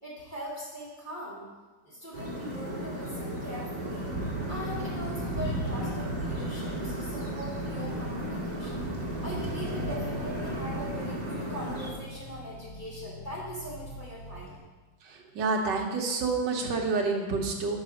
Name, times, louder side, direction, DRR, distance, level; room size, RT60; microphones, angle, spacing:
voice 1, 0.0-1.5 1.8-4.1 4.5-8.9 9.2-14.6, equal, 20° left, -7 dB, 2.4 m, -41 dB
sound 1, 2.1-11.9, right 1 dB, 20° right, 1.6 m, -34 dB
Accelerating revving vroom, 4.2-14.6, equal, 75° left, 2.6 m, -42 dB
voice 2, 15.3-17.8, right 4 dB, 60° right, 1 dB, 1.4 m, -28 dB
6.0 x 4.8 x 6.4 m, 1.3 s
omnidirectional pair, 2.3 m